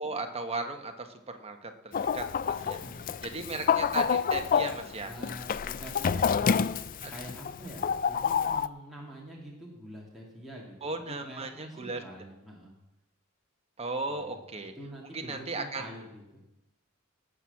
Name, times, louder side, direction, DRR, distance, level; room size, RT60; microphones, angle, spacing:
voice 1, 0.0-2.8 3.2-5.1 7.0-7.1 10.8-12.0 13.8-14.7 15.1-15.8, right 3 dB, 30° right, 5 dB, 1.2 m, -36 dB
Chicken rooster, 1.9-8.7, left 7 dB, 40° left, 0.4 m, -28 dB
voice 2, 2.6-3.5 5.1-12.7 14.1-16.4, equal, ahead, -5 dB, 2.6 m, -46 dB
18.0 x 6.2 x 7.2 m, 0.95 s
head